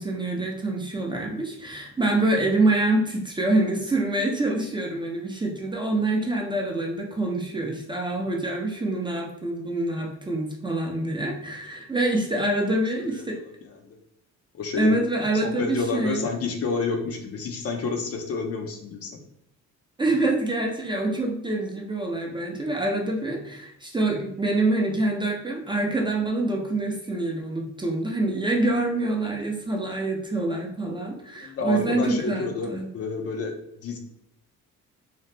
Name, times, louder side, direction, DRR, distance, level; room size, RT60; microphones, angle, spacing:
voice 1, 0.0-13.4 14.8-16.2 20.0-32.9, right 2 dB, 15° right, 0 dB, 0.5 m, -26 dB
voice 2, 12.7-14.0 14.5-15.0 15.3-19.2 31.4-34.0, left 4 dB, 50° left, 3 dB, 0.6 m, -30 dB
2.8 x 2.0 x 3.2 m, 0.72 s
cardioid pair, 90°, 30 cm